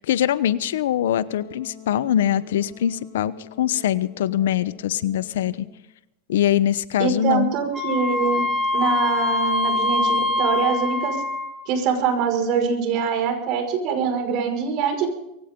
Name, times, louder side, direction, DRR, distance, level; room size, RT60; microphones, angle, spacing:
voice 1, 0.0-5.7 6.3-7.5, left 11 dB, 90° left, 16 dB, 0.9 m, -23 dB
Wind instrument woodwind instrument, 1.0-5.8, left 9 dB, 70° left, 8.0 m, -46 dB
voice 2, 7.0-8.4 8.7-11.2 11.7-15.1, right 6 dB, 55° right, 6 dB, 5.5 m, -24 dB
Wind instrument woodwind instrument 2, 7.7-11.6, left 2 dB, 10° right, 3.8 m, -23 dB
22.0 x 16.5 x 3.8 m, 0.83 s
supercardioid pair, 125°, 0 cm